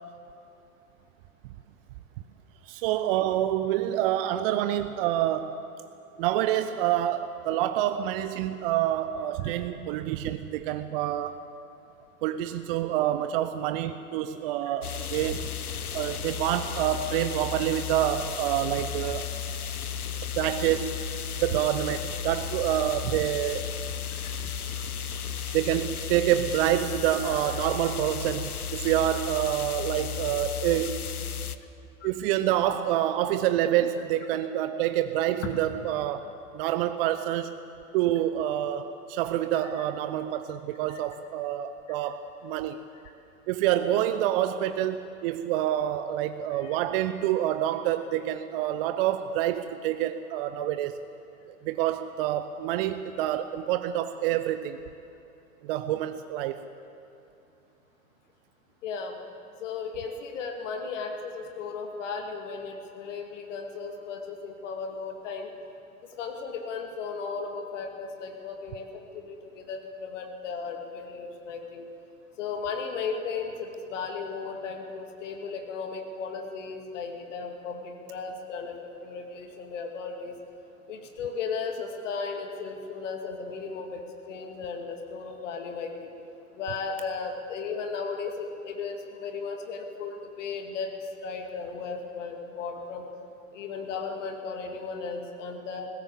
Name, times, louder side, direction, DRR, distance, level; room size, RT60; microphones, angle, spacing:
voice 1, 2.6-5.6 6.2-11.4 12.2-15.5 15.9-19.4 20.4-21.0 21.4-23.7 25.4-31.1 32.0-36.2 36.5-37.6 37.9-42.8 43.5-51.0 51.5-54.8 55.6-56.7, right 12 dB, 40° right, 10 dB, 0.7 m, -27 dB
sound 1, 14.8-31.6, left 8 dB, 80° left, 0.9 m, -34 dB
voice 2, 58.8-59.2 59.6-65.5 66.0-68.9 69.1-71.9 72.4-78.8 79.0-80.3 80.9-86.1 86.5-90.9 91.2-93.1 93.5-95.9, left 5 dB, 55° left, 4 dB, 2.4 m, -35 dB
19.5 x 16.0 x 8.6 m, 2.9 s
figure-of-eight pair, 95°, 44 cm